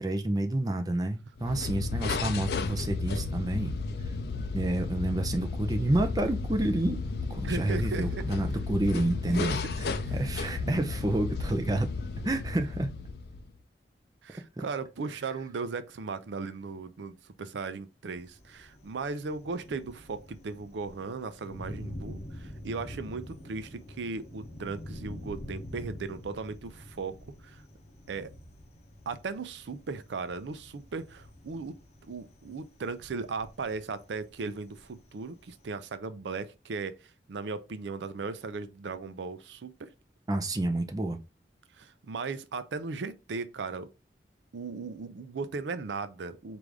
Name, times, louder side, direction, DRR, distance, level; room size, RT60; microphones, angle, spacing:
voice 1, 0.0-3.7 4.0-4.2 4.5-7.0 7.3-11.9 12.2-12.9 14.6-14.7 40.3-41.2, right 1 dB, 20° right, 0.5 m, -29 dB
sound 1, 1.4-13.6, left 4 dB, 60° left, 0.4 m, -33 dB
voice 2, 7.4-8.3 10.0-10.2 14.2-27.2 27.4-27.6 28.1-28.3 29.1-31.8 32.1-39.9 41.7-43.9 44.5-46.6, right 4 dB, 85° right, 0.4 m, -37 dB
Thunder, 18.2-35.7, equal, 40° left, 0.7 m, -46 dB
4.7 x 2.5 x 3.4 m
head